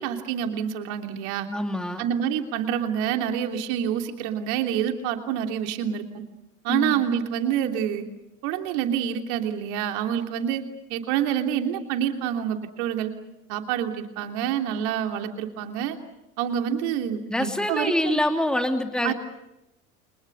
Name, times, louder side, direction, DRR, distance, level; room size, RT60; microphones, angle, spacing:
voice 1, 0.0-1.5 2.0-6.2 6.6-8.1 8.4-10.6 10.9-13.1 13.5-16.0 16.4-18.2 19.0-19.1, right 9 dB, 55° right, 5 dB, 3.2 m, -27 dB
voice 2, 1.5-2.0 6.7-7.0 17.3-19.1, left 1 dB, ahead, 6 dB, 2.5 m, -25 dB
30.0 x 25.5 x 6.8 m, 0.90 s
figure-of-eight pair, 70°, 42 cm